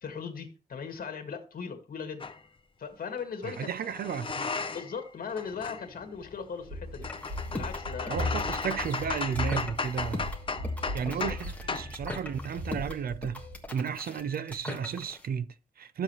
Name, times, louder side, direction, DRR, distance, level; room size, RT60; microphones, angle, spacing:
voice 1, 0.0-2.3 2.8-3.7 4.7-7.1 7.5-8.5 11.0-11.3, left 6 dB, 65° left, 1.8 m, -38 dB
sound 1, 2.2-2.4 3.4-5.0 5.3-11.4 11.7-11.9, left 4 dB, 35° left, 0.7 m, -36 dB
voice 2, 3.4-4.6 8.1-10.3 10.9-13.5 13.7-16.0, right 7 dB, 70° right, 0.6 m, -33 dB
Run, 6.6-13.6, left 1 dB, 40° right, 2.5 m, -38 dB
sound 2, 7.0-15.2, left 2 dB, 10° left, 1.4 m, -41 dB
11.5 x 7.3 x 3.1 m
wide cardioid pair, 160°, 16 cm